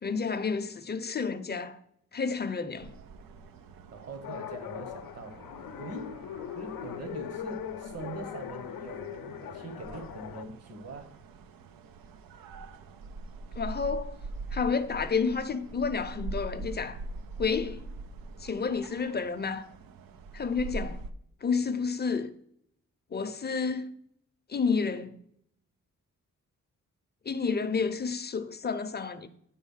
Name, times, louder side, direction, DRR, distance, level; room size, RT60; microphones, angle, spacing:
voice 1, 0.0-1.8 2.1-2.9 13.5-14.2 14.5-17.0 17.4-17.9 18.4-19.7 20.3-21.0 21.4-22.3 23.1-23.9 24.5-25.1 27.2-29.3, left 5 dB, 30° left, 0.6 m, -30 dB
sound 1, 2.7-21.1, right 2 dB, 85° right, 0.6 m, -43 dB
voice 2, 3.9-5.4 5.8-6.2 6.6-11.1, right 2 dB, 50° right, 1.2 m, -42 dB
sound 2, 4.2-10.4, left 9 dB, 85° left, 0.6 m, -40 dB
9.9 x 3.9 x 5.5 m
wide cardioid pair, 115°, 33 cm